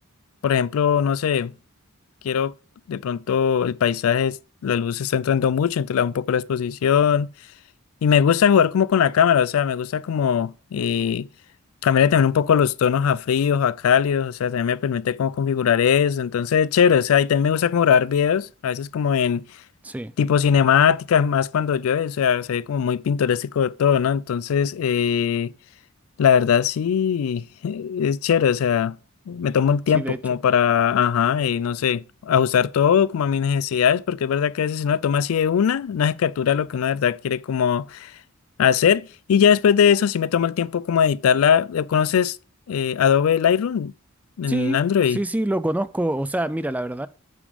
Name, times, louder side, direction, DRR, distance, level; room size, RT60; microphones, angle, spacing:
voice 1, 0.4-1.5 2.2-2.5 2.9-4.4 4.6-7.3 8.0-11.3 11.8-19.4 20.2-25.5 26.2-29.0 29.3-38.1 38.6-42.4 42.7-43.9 44.4-45.2, left 7 dB, 85° left, 0.4 m, -20 dB
voice 2, 44.5-44.8 45.1-47.1, right 1 dB, 5° right, 0.3 m, -25 dB
8.6 x 5.1 x 5.1 m
head